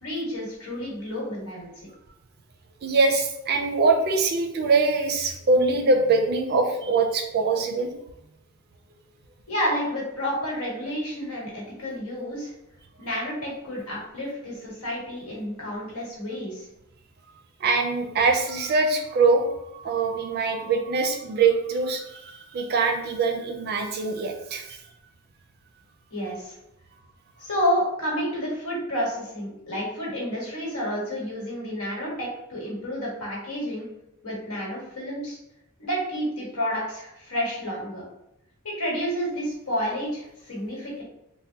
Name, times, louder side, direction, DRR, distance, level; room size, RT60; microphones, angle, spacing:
voice 1, 0.0-1.7 9.5-12.5 13.0-16.7 26.1-26.6 27.4-33.9 34.2-35.4 35.8-38.0 38.8-41.0, equal, 85° left, -4 dB, 1.3 m, -30 dB
voice 2, 2.8-7.9 17.6-19.4 19.7-24.8, right 4 dB, 45° right, 4 dB, 0.4 m, -23 dB
3.4 x 2.1 x 2.7 m, 0.82 s
head